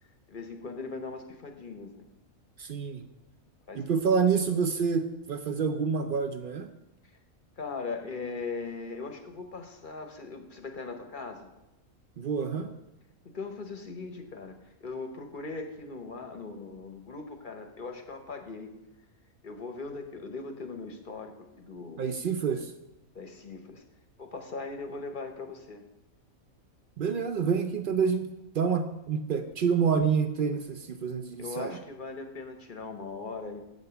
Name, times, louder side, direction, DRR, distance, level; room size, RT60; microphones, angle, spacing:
voice 1, 0.3-2.1 3.7-3.9 7.6-11.5 13.3-18.7 19.4-22.1 23.1-23.8 24.2-25.8 31.4-33.6, left 4 dB, 45° left, 5 dB, 0.8 m, -39 dB
voice 2, 2.6-3.1 3.8-6.7 12.2-12.7 22.0-22.7 27.0-31.8, right 6 dB, 65° right, 8 dB, 0.5 m, -28 dB
8.1 x 5.3 x 6.8 m, 0.94 s
omnidirectional pair, 1.5 m